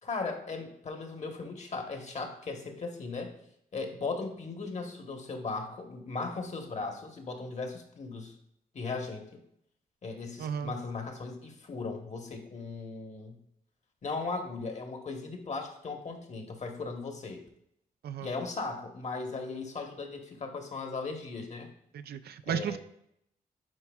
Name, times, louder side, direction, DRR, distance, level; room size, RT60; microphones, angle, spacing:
voice 1, 0.0-3.4 3.7-8.3 8.7-9.4 10.0-13.4 14.0-17.5 18.2-21.7 22.5-22.8, left 3 dB, 45° left, 4 dB, 1.2 m, -37 dB
voice 2, 10.4-10.7 18.0-18.3 21.9-22.8, right 8 dB, 80° right, 11 dB, 0.4 m, -34 dB
9.6 x 4.6 x 2.3 m, 0.74 s
cardioid pair, 90°, 16 cm